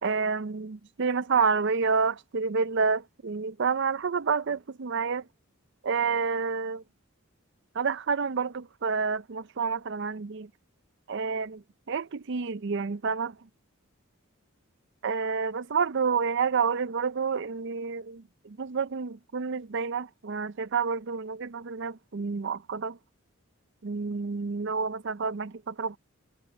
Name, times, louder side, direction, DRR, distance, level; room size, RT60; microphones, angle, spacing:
voice 1, 0.0-5.2 5.8-6.8 7.8-10.5 11.1-11.6 11.9-13.3 15.0-23.0 23.8-26.0, right 5 dB, 55° right, 0.5 m, -29 dB
head